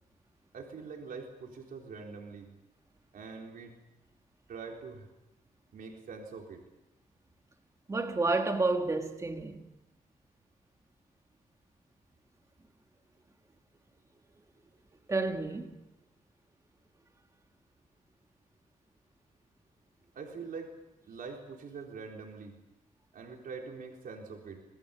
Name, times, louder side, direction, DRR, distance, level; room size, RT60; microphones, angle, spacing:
voice 1, 0.5-2.5 3.1-3.8 4.5-5.1 5.7-6.7 20.1-20.7 21.0-22.6 23.1-24.6, right 5 dB, 80° right, 4.0 m, -44 dB
voice 2, 7.9-9.7 15.1-15.8, right 3 dB, 20° right, 2.0 m, -30 dB
25.5 x 21.0 x 7.1 m
wide cardioid pair, 180°, 15 cm